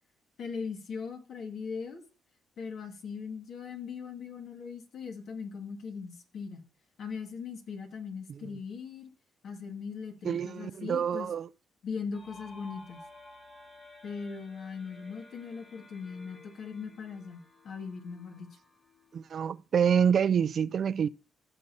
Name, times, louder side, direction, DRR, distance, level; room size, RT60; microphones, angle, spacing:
voice 1, 0.4-2.0 2.6-6.6 7.0-9.1 9.4-11.3 11.8-13.0 14.0-18.6, left 5 dB, 65° left, 1.9 m, -39 dB
voice 2, 8.3-8.6 10.2-11.5 19.1-21.1, right 8 dB, 55° right, 0.3 m, -27 dB
sound 1, 12.1-19.7, left 2 dB, 45° left, 4.5 m, -53 dB
15.0 x 6.6 x 2.7 m
cardioid pair, 90°, 0 cm